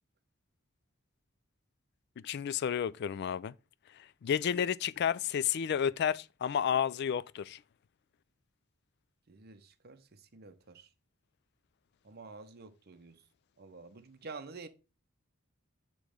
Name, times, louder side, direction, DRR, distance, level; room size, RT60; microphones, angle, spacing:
voice 1, 2.2-3.5 4.2-7.6, left 8 dB, 50° left, 0.3 m, -31 dB
voice 2, 9.3-10.9 12.0-13.2 13.6-14.7, right 4 dB, 50° right, 0.8 m, -49 dB
8.4 x 3.1 x 4.9 m
head